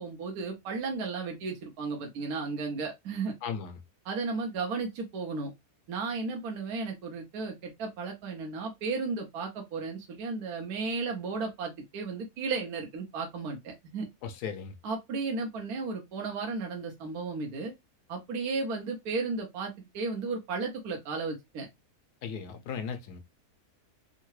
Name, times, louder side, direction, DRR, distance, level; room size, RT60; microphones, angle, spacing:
voice 1, 0.0-3.3 4.0-5.5 5.9-14.1 14.8-17.7 18.1-21.7, right 4 dB, 70° right, 1.2 m, -34 dB
voice 2, 3.4-3.8 14.2-14.7 22.2-23.2, left 6 dB, 80° left, 1.2 m, -36 dB
3.7 x 2.2 x 3.0 m
omnidirectional pair, 1.6 m